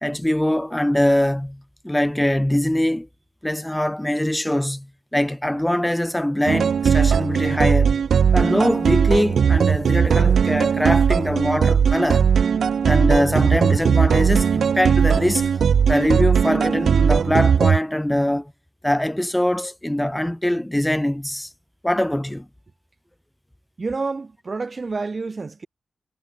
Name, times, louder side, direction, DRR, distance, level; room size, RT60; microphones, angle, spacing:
voice 1, 0.0-3.1 3.4-8.0 8.3-12.3 12.8-15.4 15.9-18.5 18.8-21.5 21.8-22.4, left 1 dB, 5° left, 1.4 m, -22 dB
sound 1, 6.5-17.8, right 7 dB, 80° right, 0.8 m, -18 dB
voice 2, 23.8-25.7, right 4 dB, 40° right, 1.3 m, -28 dB
wide cardioid pair, 125°, 0 cm